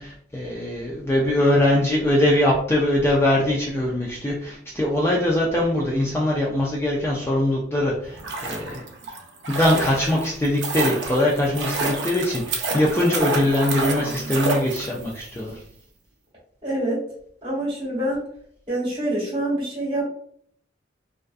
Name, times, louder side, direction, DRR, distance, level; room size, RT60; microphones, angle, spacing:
voice 1, 0.0-8.8 9.5-15.6, left 1 dB, 15° left, -3 dB, 0.3 m, -22 dB
sound 1, 8.0-15.2 15.5-15.6, right 3 dB, 65° right, 0.5 m, -29 dB
voice 2, 16.6-17.0 17.4-18.3 18.7-20.0, right 1 dB, 30° right, -6 dB, 1.3 m, -26 dB
2.4 x 2.3 x 2.3 m, 0.64 s
head